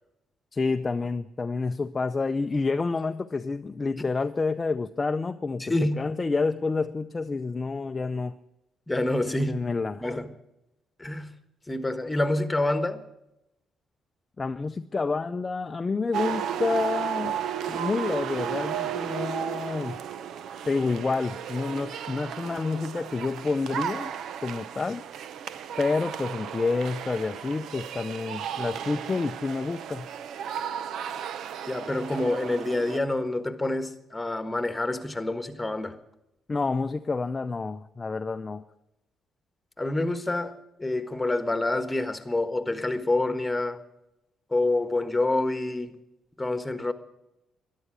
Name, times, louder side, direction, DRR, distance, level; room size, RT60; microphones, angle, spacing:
voice 1, 0.5-8.3 9.5-10.0 14.4-17.4 17.7-20.0 20.7-24.1 24.4-25.0 25.8-30.1 36.5-38.6, left 4 dB, 30° left, 0.5 m, -29 dB
voice 2, 5.6-6.0 8.9-9.6 10.0-10.3 11.0-11.3 11.7-13.0 31.7-36.0 39.8-43.8 44.5-46.0 46.4-46.9, left 2 dB, 15° left, 1.4 m, -27 dB
sound 1, 16.1-33.0, right 9 dB, 75° right, 0.8 m, -34 dB
12.5 x 11.5 x 9.9 m
cardioid pair, 90°, 0 cm